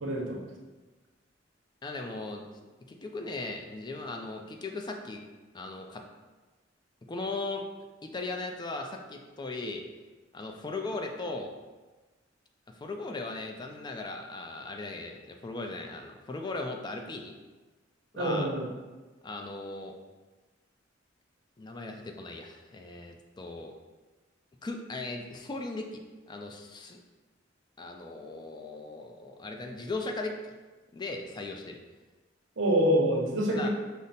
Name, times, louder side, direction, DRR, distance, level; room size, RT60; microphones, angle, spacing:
voice 1, 0.0-0.4 18.2-18.7 32.6-33.7, right 1 dB, 75° right, -1 dB, 0.8 m, -26 dB
voice 2, 1.8-2.4 2.9-5.2 5.5-6.0 7.1-7.6 8.0-9.8 10.3-11.5 12.8-17.3 18.1-18.5 19.2-19.9 21.6-23.7 24.6-26.0 26.3-27.0 27.8-30.3 30.9-31.8 33.5-33.7, left 3 dB, 25° left, 3 dB, 0.3 m, -38 dB
5.1 x 2.0 x 4.0 m, 1.2 s
head